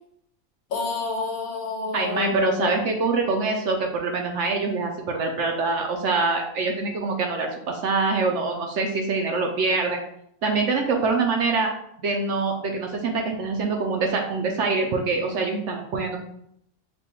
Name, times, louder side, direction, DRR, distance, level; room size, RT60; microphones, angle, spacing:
voice 1, 0.7-2.8, left 4 dB, 70° left, 1 dB, 1.2 m, -29 dB
voice 2, 1.9-10.0 10.4-11.7 12.0-16.2, right 3 dB, 65° right, 2 dB, 0.8 m, -24 dB
5.3 x 2.2 x 2.9 m, 0.72 s
omnidirectional pair, 1.5 m